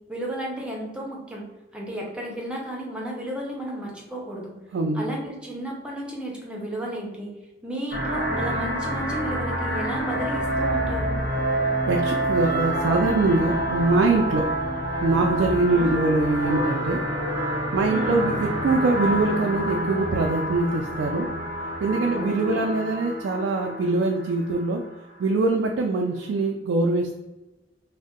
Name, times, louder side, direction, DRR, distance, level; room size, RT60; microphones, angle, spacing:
voice 1, 0.1-1.4 1.7-4.5 4.9-7.3 7.6-11.2 15.7-16.0 17.9-18.2 22.1-22.7, right 1 dB, 5° right, -2 dB, 0.7 m, -33 dB
voice 2, 4.7-5.0 11.9-14.4 15.0-17.0 17.7-21.3 21.8-24.8 25.2-27.1, right 3 dB, 70° right, 1 dB, 0.3 m, -23 dB
sound 1, 7.9-24.8, right 1 dB, 60° left, 0.8 m, -28 dB
2.6 x 2.1 x 3.6 m, 1.1 s
head